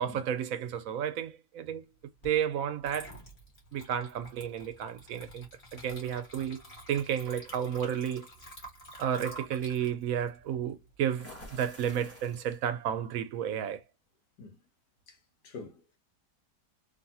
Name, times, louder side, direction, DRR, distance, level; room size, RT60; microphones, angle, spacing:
voice 1, 0.0-1.8 2.2-3.1 3.7-8.3 9.0-13.8, right 9 dB, 70° right, 0.8 m, -32 dB
Water / Liquid, 2.2-2.4 2.8-11.4, right 1 dB, 40° left, 1.7 m, -49 dB
sound 1, 4.5-5.1 6.4-6.6 7.1-7.4 11.1-12.8, left 1 dB, 10° left, 0.7 m, -50 dB
voice 2, 15.4-16.0, left 4 dB, 75° left, 1.6 m, -46 dB
3.3 x 2.5 x 2.7 m
omnidirectional pair, 1.8 m